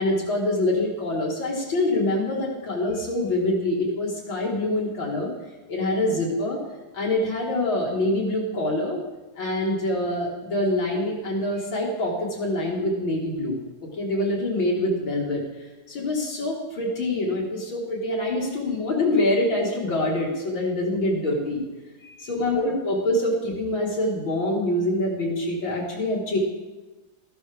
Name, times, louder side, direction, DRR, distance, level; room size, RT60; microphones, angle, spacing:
voice 1, 0.0-5.3 5.7-6.6 6.9-9.0 9.4-21.6 22.0-26.4, left 1 dB, 65° left, -3 dB, 2.6 m, -25 dB
13.0 x 13.0 x 3.4 m, 1.2 s
omnidirectional pair, 2.3 m